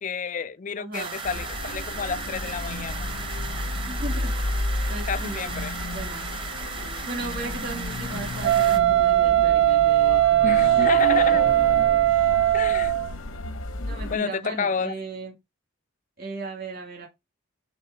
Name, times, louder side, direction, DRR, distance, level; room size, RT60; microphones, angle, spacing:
voice 1, 0.0-3.1 5.1-5.7 10.4-11.5 12.5-13.0 14.1-15.0, left 6 dB, 35° left, 0.4 m, -30 dB
voice 2, 0.8-1.2 3.9-4.5 4.9-5.6 5.9-6.3 7.1-11.3 13.8-15.3 16.2-17.1, right 2 dB, 50° right, 2.2 m, -37 dB
sound 1, 0.9-8.8, right 4 dB, 25° right, 0.9 m, -36 dB
sound 2, 1.2-14.2, left 1 dB, 80° left, 0.9 m, -32 dB
Wind instrument woodwind instrument, 8.4-13.1, right 14 dB, 80° right, 0.3 m, -19 dB
7.0 x 4.0 x 4.1 m
head